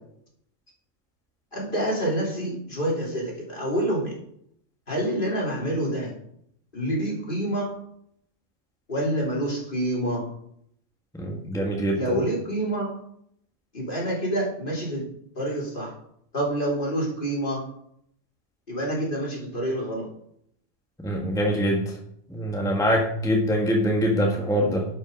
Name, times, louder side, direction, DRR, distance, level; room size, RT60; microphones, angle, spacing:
voice 1, 1.5-4.2 4.9-6.1 6.7-7.7 8.9-10.3 11.9-12.9 13.7-15.0 15.3-15.9 16.3-17.6 18.7-20.1, right 1 dB, 45° left, -3 dB, 3.3 m, -27 dB
voice 2, 11.1-12.0 21.0-21.8 22.3-24.9, equal, 5° left, 0 dB, 1.4 m, -24 dB
11.0 x 5.6 x 5.3 m, 0.70 s
omnidirectional pair, 1.3 m